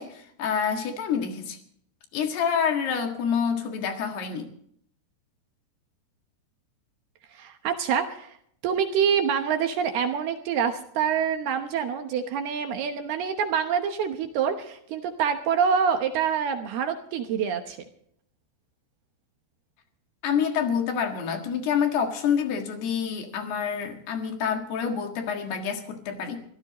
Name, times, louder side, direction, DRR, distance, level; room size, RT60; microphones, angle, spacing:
voice 1, 0.0-1.6 2.1-4.5 20.2-26.4, left 7 dB, 65° left, 4 dB, 3.6 m, -27 dB
voice 2, 7.3-8.4 8.6-17.8, right 7 dB, 70° right, 5 dB, 2.7 m, -26 dB
24.5 x 15.5 x 3.1 m, 0.67 s
omnidirectional pair, 5.4 m